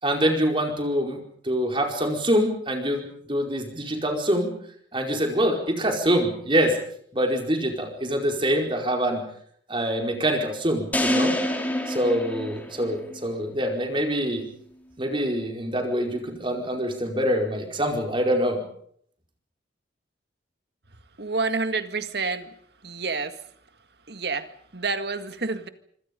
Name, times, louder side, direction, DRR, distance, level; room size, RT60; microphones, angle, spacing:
voice 1, 0.0-1.2 1.4-3.0 3.3-4.5 4.9-6.8 7.1-9.2 9.7-11.4 11.9-14.4 15.0-18.6, equal, 25° right, 3 dB, 4.8 m, -25 dB
sound 1, 10.9-13.2, left 1 dB, 10° left, 3.3 m, -26 dB
voice 2, 21.2-22.5 22.8-23.4 24.1-25.7, right 3 dB, 60° right, 9 dB, 2.0 m, -29 dB
26.0 x 26.0 x 5.4 m, 0.63 s
head